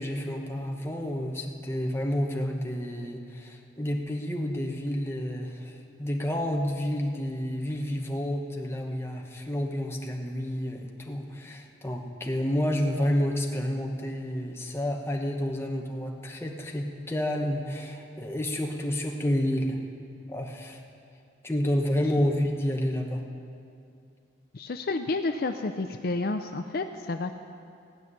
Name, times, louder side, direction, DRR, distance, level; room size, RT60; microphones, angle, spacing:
voice 1, 0.0-19.8 20.3-20.8 21.4-23.2, equal, 15° left, 1 dB, 1.0 m, -30 dB
voice 2, 24.5-27.3, left 3 dB, 55° left, 7 dB, 0.5 m, -30 dB
16.0 x 5.9 x 9.6 m, 2.4 s
head